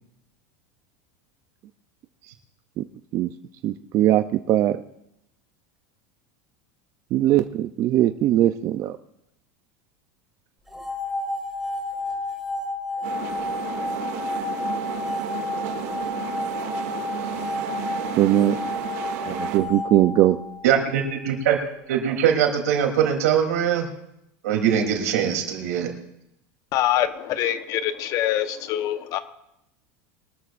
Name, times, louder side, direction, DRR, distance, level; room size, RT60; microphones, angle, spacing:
voice 1, 3.6-4.8 7.1-9.0 18.2-18.6 19.3-20.4, right 13 dB, 40° right, 10 dB, 0.5 m, -20 dB
sound 1, 10.7-20.8, left 2 dB, 5° right, 2.5 m, -31 dB
sound 2, 13.0-19.6, right 9 dB, 70° right, 2.2 m, -33 dB
voice 2, 20.6-21.6 21.9-23.9 24.4-25.9, right 8 dB, 90° right, 2 dB, 3.2 m, -22 dB
voice 3, 26.7-29.2, left 12 dB, 45° left, 10 dB, 1.1 m, -24 dB
23.0 x 13.0 x 2.5 m, 0.80 s
supercardioid pair, 135°, 8 cm